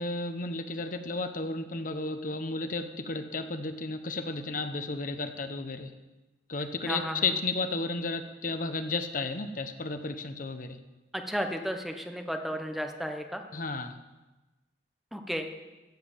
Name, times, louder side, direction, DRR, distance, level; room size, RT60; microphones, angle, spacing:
voice 1, 0.0-5.9 6.5-10.8 13.5-13.9, left 3 dB, 50° left, 8 dB, 1.0 m, -33 dB
voice 2, 6.8-7.2 11.1-13.4 15.1-15.5, equal, ahead, 5 dB, 1.1 m, -33 dB
15.0 x 7.6 x 7.4 m, 1.1 s
head